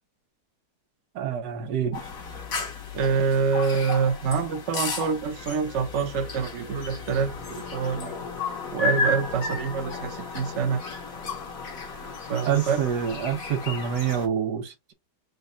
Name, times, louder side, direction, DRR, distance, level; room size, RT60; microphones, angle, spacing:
voice 1, 1.1-2.0 12.4-14.9, right 8 dB, 80° right, 1.4 m, -27 dB
sound 1, 1.9-14.3, left 3 dB, 60° left, 1.4 m, -33 dB
voice 2, 2.9-8.2 8.7-10.8 12.3-12.8, right 5 dB, 55° right, 0.9 m, -26 dB
4.0 x 2.3 x 3.8 m
omnidirectional pair, 1.8 m